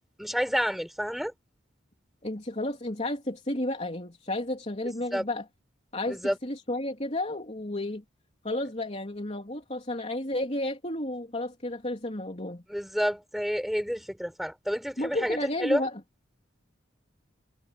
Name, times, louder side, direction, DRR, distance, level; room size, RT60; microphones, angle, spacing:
voice 1, 0.2-1.3 5.1-5.2 6.1-6.4 12.7-15.8, equal, ahead, 7.1 m, -29 dB
voice 2, 2.2-5.4 5.9-8.0 8.4-12.6 15.0-16.0, left 1 dB, 35° left, 3.5 m, -32 dB
head